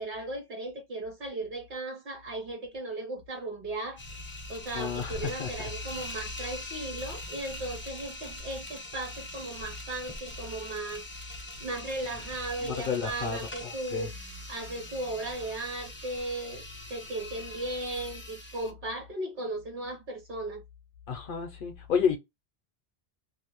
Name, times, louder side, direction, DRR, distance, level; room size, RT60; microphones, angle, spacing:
voice 1, 0.0-14.1 14.5-16.6 16.9-20.6, right 2 dB, 55° right, 1.1 m, -37 dB
sound 1, 4.0-18.7, left 2 dB, 15° left, 0.5 m, -42 dB
voice 2, 4.7-5.7 12.6-14.1 21.1-22.2, left 7 dB, 60° left, 0.7 m, -31 dB
2.5 x 2.1 x 2.9 m
omnidirectional pair, 1.0 m